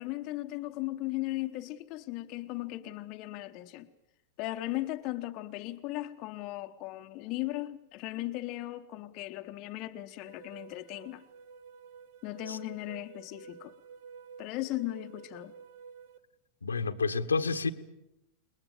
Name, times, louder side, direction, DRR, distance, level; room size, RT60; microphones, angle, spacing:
voice 1, 0.0-3.9 4.4-11.2 12.2-13.7 14.4-15.5, left 17 dB, 40° left, 1.1 m, -37 dB
sound 1, 10.2-16.2, right 6 dB, 50° right, 1.2 m, -51 dB
voice 2, 16.6-17.7, left 4 dB, 75° left, 1.3 m, -29 dB
28.5 x 21.0 x 7.4 m
figure-of-eight pair, 90°, 0 cm